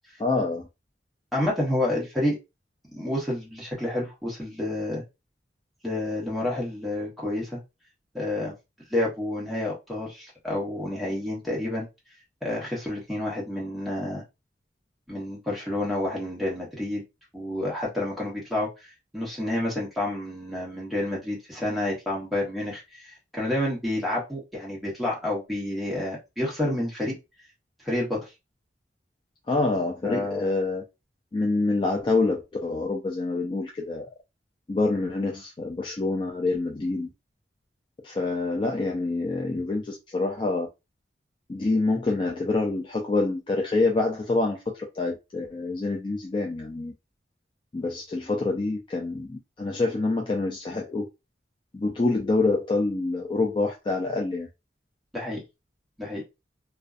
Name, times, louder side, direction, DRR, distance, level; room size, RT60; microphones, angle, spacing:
voice 1, 0.2-0.7 29.5-30.8 31.3-34.1 34.7-37.1 38.0-40.7 41.5-46.9 47.7-51.1 51.7-54.5, left 3 dB, 25° left, 0.3 m, -26 dB
voice 2, 1.3-2.4 2.9-5.0 5.8-7.6 8.1-8.5 8.9-11.9 12.4-14.2 15.1-17.0 17.3-27.1 27.8-28.3 30.0-30.5 55.1-55.4 56.0-56.2, left 1 dB, ahead, 1.0 m, -29 dB
2.5 x 2.2 x 2.3 m
head